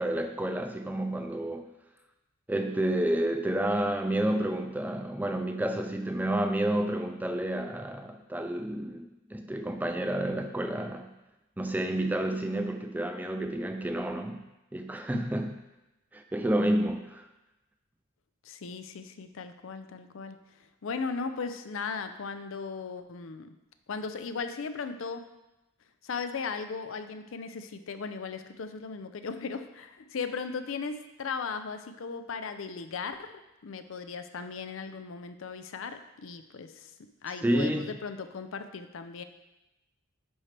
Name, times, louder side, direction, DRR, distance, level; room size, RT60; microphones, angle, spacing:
voice 1, 0.0-1.7 2.5-11.1 11.6-14.4 14.7-15.5 16.1-17.3 37.4-37.9, right 1 dB, 10° right, 6 dB, 0.3 m, -30 dB
voice 2, 18.4-20.4 20.8-23.5 23.9-25.3 26.0-33.3 33.6-36.9 37.2-39.2, left 5 dB, 65° left, 9 dB, 0.5 m, -37 dB
9.9 x 4.3 x 3.3 m, 0.97 s
head